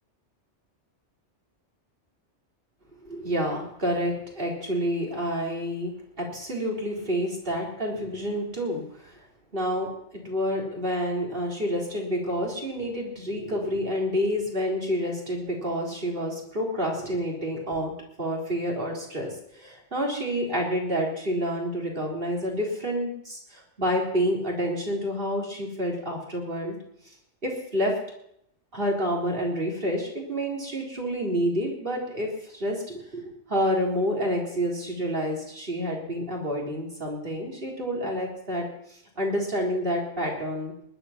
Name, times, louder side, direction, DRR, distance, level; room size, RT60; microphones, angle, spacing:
voice 1, 3.0-5.9 6.2-9.2 9.5-17.9 18.2-26.8 27.4-27.9 28.7-38.7 39.2-40.7, equal, 50° right, -1 dB, 4.1 m, -28 dB
20.0 x 11.0 x 5.9 m, 0.74 s
omnidirectional pair, 1.2 m